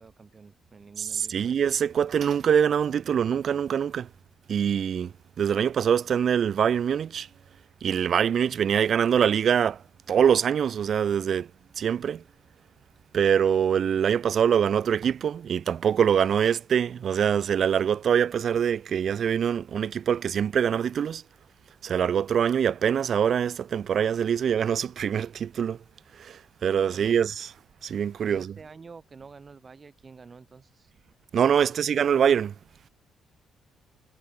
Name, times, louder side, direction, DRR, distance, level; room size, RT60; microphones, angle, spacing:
voice 1, 0.0-1.4 26.9-27.2 28.2-30.9 31.6-32.0, right 5 dB, 35° right, 5.1 m, -49 dB
voice 2, 1.0-4.1 4.5-5.1 5.4-7.3 7.8-9.8 10.1-11.5 11.8-12.2 13.1-21.2 21.8-25.8 26.1-27.5 27.8-28.5 31.3-32.5, right 8 dB, 55° right, 0.4 m, -24 dB
cardioid pair, 90°, 0 cm